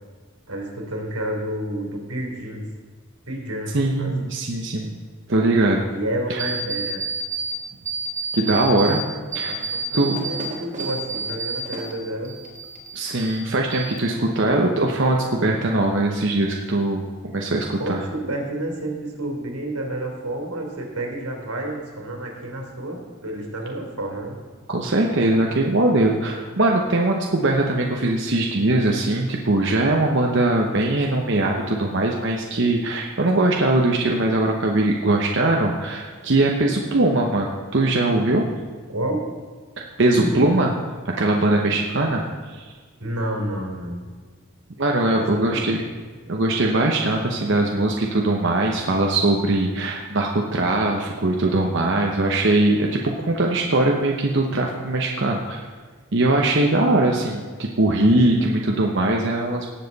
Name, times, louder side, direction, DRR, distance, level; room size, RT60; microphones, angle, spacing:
voice 1, 0.5-2.7 3.3-4.2 5.9-7.0 9.4-12.3 17.8-24.4 38.9-39.2 40.1-40.4 43.0-44.1 45.1-45.8, right 1 dB, 90° right, 0 dB, 3.2 m, -30 dB
voice 2, 3.7-5.0 5.3-5.8 6.3-6.5 8.3-9.0 9.3-10.2 12.9-18.0 24.7-38.5 39.8-40.7 41.0-42.7 44.8-45.8 46.3-55.7 56.1-59.7, right 2 dB, 55° right, 0 dB, 0.9 m, -21 dB
sound 1, 6.4-7.5 7.9-9.0 9.3-11.9 12.2-13.4 13.7-14.3, right 3 dB, 35° right, 1.6 m, -29 dB
18.0 x 7.4 x 4.0 m, 1.5 s
head